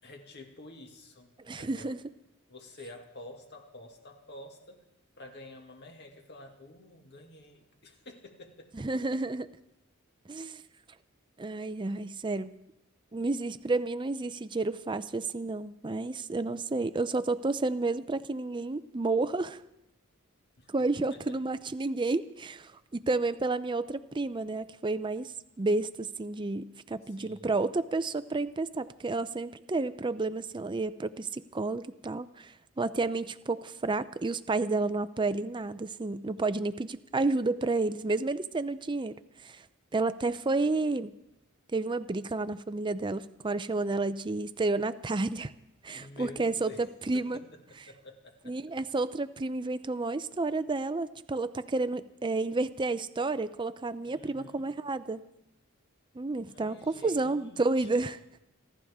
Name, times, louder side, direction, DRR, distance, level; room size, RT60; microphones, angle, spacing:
voice 1, 0.0-2.0 2.5-4.9 5.2-9.3 20.6-21.4 27.0-27.6 45.9-46.9 47.1-48.8 54.1-54.7 56.5-58.1, left 2 dB, 50° left, 3 dB, 2.2 m, -50 dB
voice 2, 1.5-2.0 8.8-9.5 10.3-10.6 11.4-12.5 13.1-19.6 20.7-39.1 39.4-39.6 39.9-41.1 41.7-45.5 45.8-46.7 47.1-47.4 48.5-55.2 56.2-58.2, right 3 dB, 20° right, 12 dB, 0.5 m, -31 dB
29.0 x 12.0 x 3.6 m, 0.83 s
head